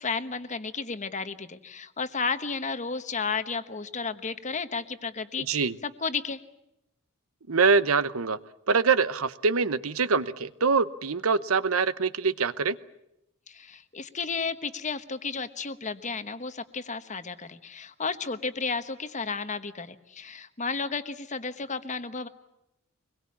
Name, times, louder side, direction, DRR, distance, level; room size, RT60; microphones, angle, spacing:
voice 1, 0.0-6.4 13.5-22.3, left 5 dB, 35° left, 10 dB, 1.2 m, -33 dB
voice 2, 5.4-5.7 7.5-8.4 8.7-12.8, right 5 dB, 80° right, 14 dB, 0.9 m, -24 dB
24.5 x 21.5 x 8.6 m, 0.84 s
head